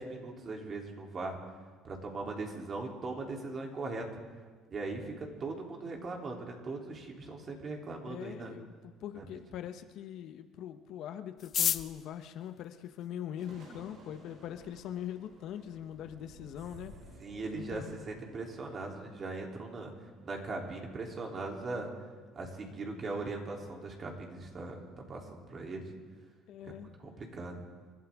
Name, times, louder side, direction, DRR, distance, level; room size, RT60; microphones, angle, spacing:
voice 1, 0.0-1.4 1.8-4.1 4.7-8.5 9.1-9.4 17.2-19.9 20.2-21.9 22.3-25.8 26.7-26.8 27.0-27.6, right 3 dB, 40° right, 1 dB, 3.2 m, -39 dB
voice 2, 8.1-17.0 17.5-18.1 26.5-26.9, left 10 dB, 65° left, 9 dB, 1.0 m, -42 dB
sound 1, 11.4-13.6 14.4-14.5 14.7-14.8 15.1-15.6 15.9-16.0 16.2-16.6 16.9-17.1 17.5-17.8, left 9 dB, 50° left, 0.6 m, -34 dB
sound 2, 13.3-21.0, right 2 dB, 70° right, 6.0 m, -55 dB
28.5 x 12.5 x 3.6 m, 1.5 s
supercardioid pair, 100°, 0 cm